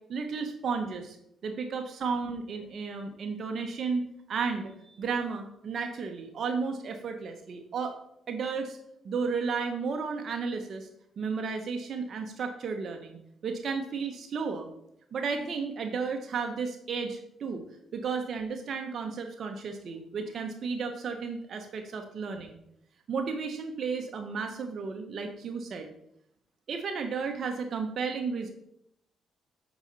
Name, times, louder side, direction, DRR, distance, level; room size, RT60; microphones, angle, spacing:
voice 1, 0.1-1.2 1.4-4.0 4.3-8.0 8.3-8.8 9.0-10.9 11.2-14.7 15.1-17.6 17.9-22.6 23.1-25.9 26.7-28.5, right 5 dB, 55° right, 5 dB, 0.8 m, -33 dB
8.0 x 5.5 x 4.0 m, 0.77 s
cardioid pair, 90°, 0 cm